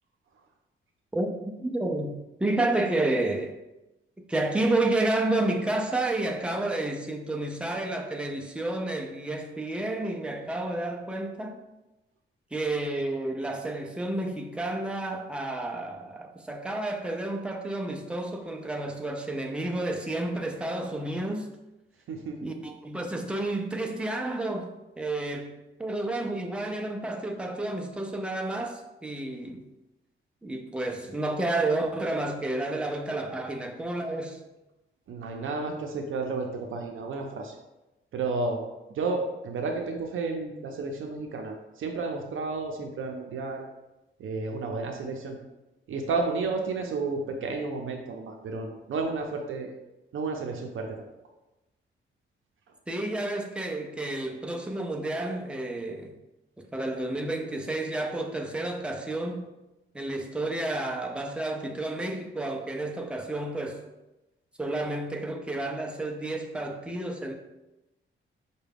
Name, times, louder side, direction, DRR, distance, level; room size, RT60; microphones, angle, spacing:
voice 1, 1.6-3.5 4.3-11.6 12.5-21.5 22.4-24.7 25.0-29.6 30.4-34.4 52.9-56.1 56.6-59.5 59.9-63.8 64.6-67.3, right 2 dB, 5° right, 0.3 m, -30 dB
voice 2, 22.1-22.4 35.1-37.5 38.1-38.6 38.9-43.6 44.2-45.4 45.9-49.7 50.1-50.9, right 3 dB, 70° right, 0.5 m, -32 dB
4.7 x 2.2 x 3.4 m
wide cardioid pair, 165°, 21 cm